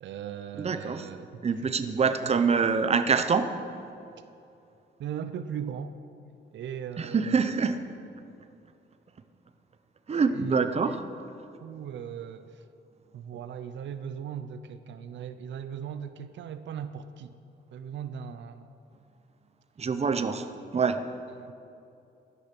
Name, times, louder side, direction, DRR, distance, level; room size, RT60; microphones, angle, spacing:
voice 1, 0.0-2.4 5.0-5.9 6.5-7.8 10.3-11.0 11.6-12.6 13.1-17.4 17.7-18.7 20.3-20.5 21.4-21.5, right 8 dB, 85° right, 11 dB, 0.6 m, -39 dB
voice 2, 0.6-1.0 1.4-3.5 7.0-7.8 10.1-11.0 19.8-20.4 20.7-21.0, right 5 dB, 35° right, 9 dB, 0.8 m, -25 dB
13.5 x 10.0 x 6.0 m, 2.7 s
cardioid pair, 110°, 19 cm